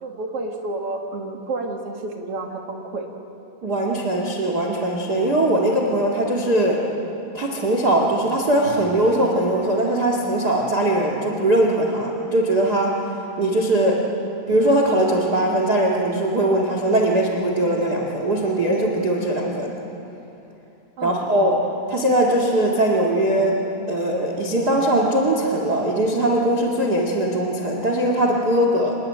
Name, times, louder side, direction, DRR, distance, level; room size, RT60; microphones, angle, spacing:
voice 1, 0.0-3.1 14.0-14.1 21.0-21.2, right 2 dB, 50° right, 2 dB, 2.0 m, -30 dB
voice 2, 3.6-6.8 7.3-13.0 13.4-14.0 14.5-19.7 21.0-21.6 21.9-23.6 23.9-29.0, right 1 dB, 35° right, 0 dB, 1.9 m, -20 dB
27.5 x 19.5 x 8.8 m, 3.0 s
omnidirectional pair, 4.8 m